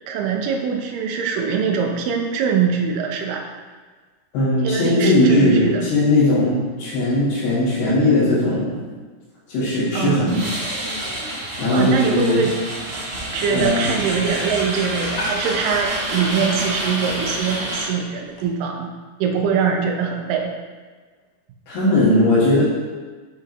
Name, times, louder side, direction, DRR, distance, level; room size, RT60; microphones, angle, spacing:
voice 1, 0.1-3.4 4.6-5.8 9.9-10.3 11.7-12.5 13.3-18.9 19.2-20.5, right 6 dB, 75° right, 2 dB, 2.2 m, -23 dB
voice 2, 4.3-8.7 9.5-10.4 11.6-12.4 13.5-14.0 21.7-22.6, left 1 dB, 80° left, -12 dB, 3.7 m, -18 dB
sound 1, 10.3-17.8, right 1 dB, 40° right, 3.0 m, -28 dB
sound 2, 13.3-18.5, equal, 55° left, 2.7 m, -37 dB
9.9 x 5.6 x 3.1 m, 1.4 s
omnidirectional pair, 4.5 m